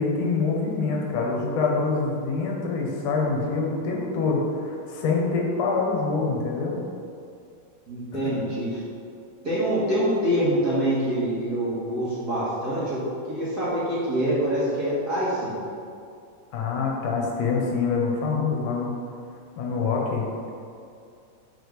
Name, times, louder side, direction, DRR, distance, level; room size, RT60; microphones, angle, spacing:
voice 1, 0.0-6.8 8.1-8.2 16.5-18.9 19.6-20.2, left 4 dB, 75° left, -1 dB, 2.5 m, -25 dB
voice 2, 7.9-8.8 9.4-13.0 13.3-15.6, right 1 dB, 35° right, -10 dB, 2.1 m, -25 dB
6.4 x 5.0 x 6.6 m, 2.4 s
omnidirectional pair, 3.7 m